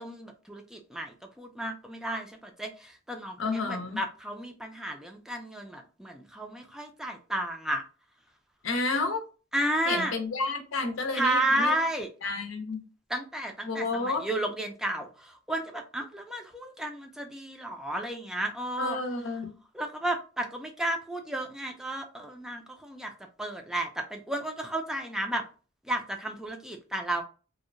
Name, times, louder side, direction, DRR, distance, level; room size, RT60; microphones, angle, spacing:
voice 1, 0.0-7.8 9.5-10.2 11.1-12.1 13.1-19.0 19.7-23.1 23.4-25.4 25.8-27.2, right 1 dB, 5° right, 0.4 m, -32 dB
voice 2, 3.4-4.0 8.6-9.2 9.9-11.7 12.2-12.8 13.7-14.3 18.8-19.5, left 3 dB, 90° left, 0.6 m, -31 dB
2.7 x 2.1 x 2.5 m
head